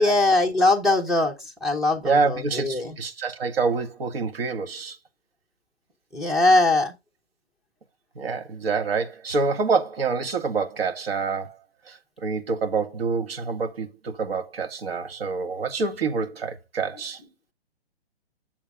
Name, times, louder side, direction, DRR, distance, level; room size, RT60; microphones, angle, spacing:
voice 1, 0.0-1.3 1.6-2.9 6.1-6.9, left 2 dB, ahead, 0.6 m, -21 dB
voice 2, 2.0-5.0 8.2-11.6 11.9-17.2, right 4 dB, 70° right, 1.9 m, -27 dB
8.6 x 7.1 x 3.5 m
hypercardioid pair, 150°, 31 cm